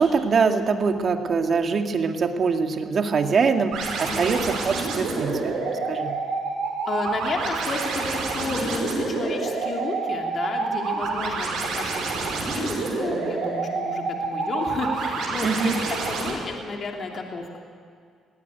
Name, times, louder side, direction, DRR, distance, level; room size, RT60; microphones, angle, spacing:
voice 1, 0.0-6.1 15.4-15.8, right 5 dB, 50° right, 5 dB, 2.1 m, -23 dB
sound 1, 3.7-16.3, right 4 dB, 75° right, 5.9 m, -28 dB
voice 2, 6.9-17.6, left 3 dB, 50° left, 1 dB, 2.8 m, -32 dB
20.0 x 17.5 x 9.3 m, 2.1 s
supercardioid pair, 75°, 0 cm